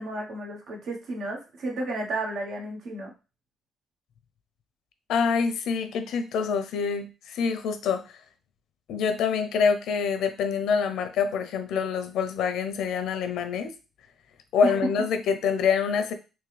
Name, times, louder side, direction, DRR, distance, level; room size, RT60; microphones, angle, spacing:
voice 1, 0.0-3.1 14.6-14.8, right 2 dB, 75° right, 0 dB, 1.2 m, -32 dB
voice 2, 5.1-8.2 8.9-13.7 14.5-16.1, left 6 dB, 80° left, 8 dB, 0.6 m, -26 dB
3.6 x 3.0 x 3.3 m, 0.31 s
cardioid pair, 80°, 0 cm